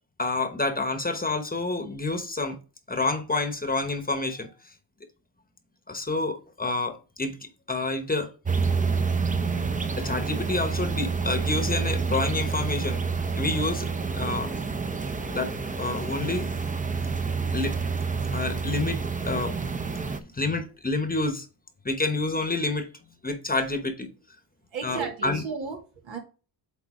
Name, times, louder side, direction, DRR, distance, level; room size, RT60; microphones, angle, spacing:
voice 1, 0.2-2.6 2.9-4.5 5.9-7.4 7.7-8.3 10.0-13.0 13.4-13.9 14.1-14.5 15.3-15.5 15.8-16.5 17.5-17.8 18.3-19.5 20.2-21.5 21.8-22.9 23.2-24.1 24.8-25.4, left 3 dB, 20° left, 1.0 m, -28 dB
sound 1, 8.5-20.2, right 5 dB, 20° right, 0.7 m, -28 dB
voice 2, 24.7-26.2, right 5 dB, 85° right, 2.5 m, -34 dB
8.2 x 4.0 x 3.6 m
cardioid pair, 105°, 45 cm